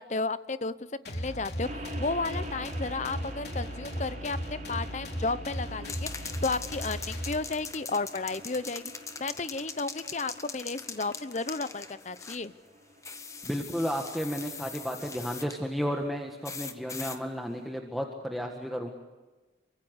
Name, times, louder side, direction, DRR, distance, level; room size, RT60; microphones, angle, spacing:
voice 1, 0.0-8.9 9.2-12.5, left 3 dB, 40° left, 14 dB, 0.8 m, -33 dB
sound 1, 1.0-7.8, equal, 55° left, 3.6 m, -37 dB
sound 2, 1.6-16.9, right 1 dB, 40° right, 4.3 m, -47 dB
sound 3, 5.8-12.5 13.0-15.6 16.4-17.2, left 5 dB, 15° left, 1.1 m, -41 dB
voice 2, 13.4-18.9, equal, ahead, 2 dB, 1.6 m, -33 dB
28.5 x 24.5 x 8.1 m, 1.2 s
head